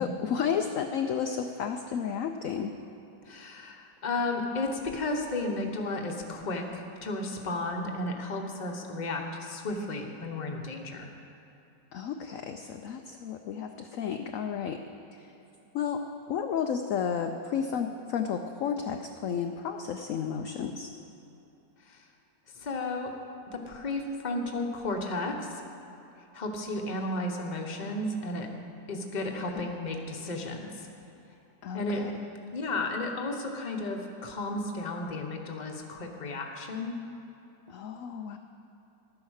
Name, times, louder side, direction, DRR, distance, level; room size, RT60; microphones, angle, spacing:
voice 1, 0.0-2.7 11.9-14.8 15.2-15.3 15.7-20.9 29.6-29.7 31.6-32.1 37.7-38.4, left 7 dB, 65° left, 5 dB, 0.8 m, -32 dB
voice 2, 3.2-11.1 21.8-22.0 22.5-23.1 23.5-25.6 26.3-28.5 28.9-30.9 31.7-32.0 32.5-36.9, left 2 dB, 30° left, 2 dB, 1.0 m, -33 dB
12.5 x 9.8 x 6.4 m, 2.9 s
omnidirectional pair, 1.9 m